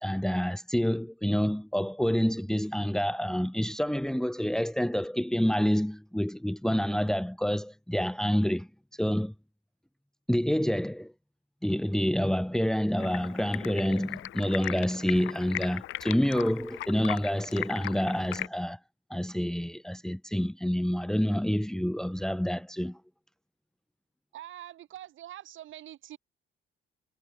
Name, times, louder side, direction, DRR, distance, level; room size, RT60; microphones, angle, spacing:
voice 1, 0.0-8.7 9.0-9.3 10.3-11.1 11.6-18.8 19.1-23.0, equal, 5° left, 1.8 m, -28 dB
Stream, 13.0-18.5, left 14 dB, 80° left, 1.3 m, -38 dB
voice 2, 24.3-26.2, right 12 dB, 75° right, 4.5 m, -44 dB
cardioid pair, 90°, 20 cm